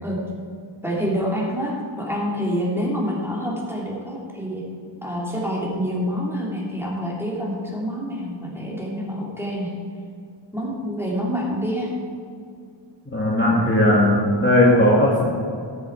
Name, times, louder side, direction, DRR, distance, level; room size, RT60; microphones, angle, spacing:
voice 1, 0.8-4.6 5.0-9.7 10.5-11.9, equal, 5° right, -5 dB, 2.8 m, -27 dB
voice 2, 13.1-15.3, left 1 dB, 25° left, -5 dB, 1.9 m, -17 dB
13.5 x 6.9 x 4.6 m, 2.3 s
wide cardioid pair, 60°, 48 cm